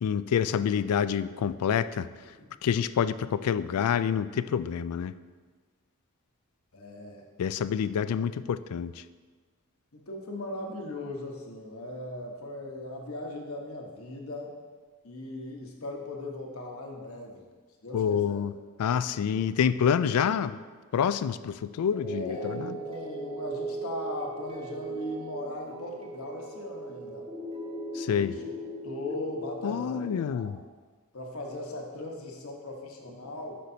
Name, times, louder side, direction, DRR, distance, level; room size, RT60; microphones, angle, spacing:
voice 1, 0.0-2.1 2.6-5.1 7.4-9.0 17.9-18.5 18.8-20.6 20.9-22.8 27.9-28.4 29.6-30.6, left 8 dB, 80° left, 14 dB, 0.3 m, -27 dB
voice 2, 6.7-7.2 9.9-14.5 15.0-17.5 17.8-18.4 22.0-27.3 28.1-28.5 28.8-30.5 31.1-33.6, left 1 dB, 65° left, 1 dB, 1.2 m, -38 dB
sound 1, 21.9-30.2, right 1 dB, 25° right, 1.3 m, -39 dB
10.0 x 6.6 x 2.8 m, 1.4 s
head